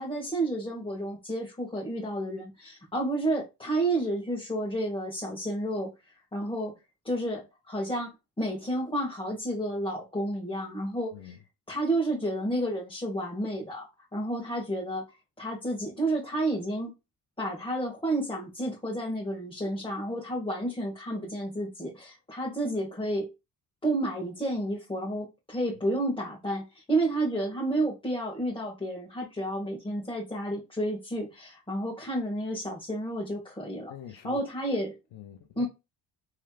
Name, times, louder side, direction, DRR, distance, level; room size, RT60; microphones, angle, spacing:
voice 1, 0.0-5.9 6.3-6.7 7.0-8.1 8.4-11.3 11.7-15.0 15.4-16.9 17.4-23.3 23.8-33.9 34.2-34.9 35.6-35.7, right 1 dB, 10° left, 1.2 m, -31 dB
voice 2, 33.9-34.4 34.7-34.8 35.1-35.6, left 10 dB, 80° left, 0.7 m, -45 dB
3.2 x 2.8 x 2.3 m
cardioid pair, 80°, 46 cm